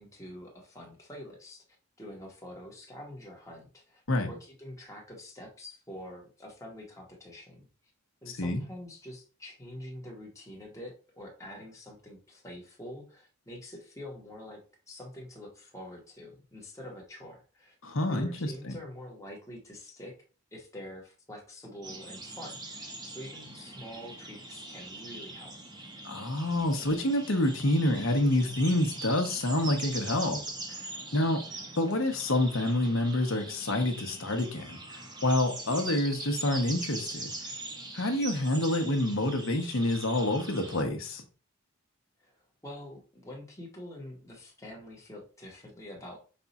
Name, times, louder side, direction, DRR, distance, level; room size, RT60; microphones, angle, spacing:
voice 1, 0.0-1.6 2.0-7.7 8.2-14.6 14.9-17.7 18.1-20.1 20.5-25.5 31.3-31.7 42.2-42.3 42.6-46.2, left 1 dB, 15° left, -1 dB, 1.0 m, -46 dB
voice 2, 8.3-8.6 17.8-18.8 26.0-30.4 30.7-30.8 31.1-31.4 31.8-37.3 37.9-41.2, left 1 dB, 60° left, 4 dB, 1.0 m, -28 dB
sound 1, 21.8-40.8, right 2 dB, 20° right, 0.7 m, -42 dB
5.3 x 2.4 x 4.0 m, 0.37 s
head